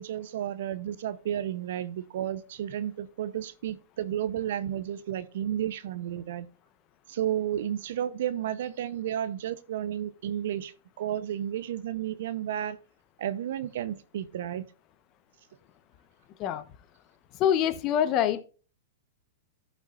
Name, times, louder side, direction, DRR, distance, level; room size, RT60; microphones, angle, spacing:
voice 1, 0.0-6.5 7.1-12.8 13.2-14.6, right 10 dB, 70° right, 0.7 m, -32 dB
voice 2, 17.3-18.4, left 10 dB, 40° left, 1.0 m, -25 dB
14.0 x 5.8 x 2.5 m
hypercardioid pair, 125°, 0 cm